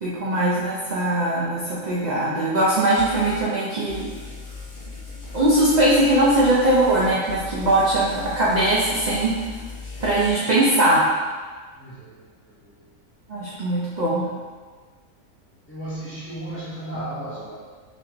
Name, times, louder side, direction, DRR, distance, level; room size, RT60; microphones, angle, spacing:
voice 1, 0.0-4.1 5.3-9.4 10.0-11.1 13.3-14.3, right 1 dB, 60° right, -7 dB, 0.4 m, -20 dB
sound 1, 2.9-3.5 3.8-10.3, left 3 dB, 40° left, 0.8 m, -38 dB
voice 2, 11.8-12.8 15.7-17.6, right 1 dB, 10° left, -9 dB, 0.7 m, -35 dB
4.3 x 3.0 x 2.9 m, 1.4 s
omnidirectional pair, 1.5 m